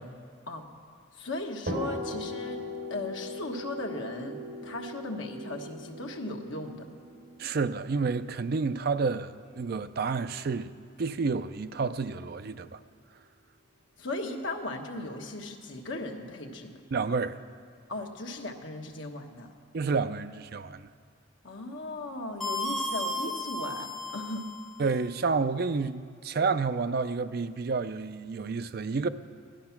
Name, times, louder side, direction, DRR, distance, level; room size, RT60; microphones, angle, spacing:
voice 1, 1.2-2.6 2.9-6.9 14.0-16.8 17.9-19.5 21.4-24.5, left 2 dB, 70° left, 1.3 m, -37 dB
sound 1, 1.7-9.4, left 1 dB, 70° right, 3.9 m, -39 dB
voice 2, 7.4-10.7 11.0-12.8 16.9-17.4 19.7-20.9 24.8-29.1, right 4 dB, 50° right, 0.4 m, -30 dB
sound 2, 22.4-24.8, left 1 dB, ahead, 0.9 m, -34 dB
15.5 x 11.5 x 5.8 m
head